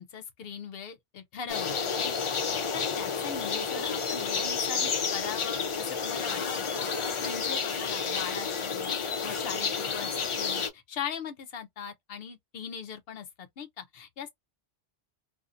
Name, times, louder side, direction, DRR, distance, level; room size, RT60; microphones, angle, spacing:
voice 1, 0.0-14.3, left 7 dB, 70° left, 0.8 m, -40 dB
sound 1, 1.5-10.7, left 5 dB, 45° left, 0.4 m, -30 dB
2.6 x 2.4 x 2.4 m
omnidirectional pair, 1.0 m